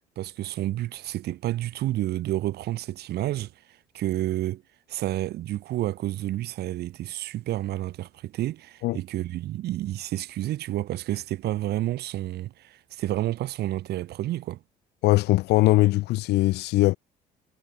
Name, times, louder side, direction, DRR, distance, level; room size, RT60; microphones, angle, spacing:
voice 1, 0.2-3.5 3.9-4.6 4.9-14.6, right 14 dB, 75° right, 7.3 m, -30 dB
voice 2, 15.0-17.0, left 18 dB, 80° left, 1.1 m, -21 dB
cardioid pair, 110°, 17 cm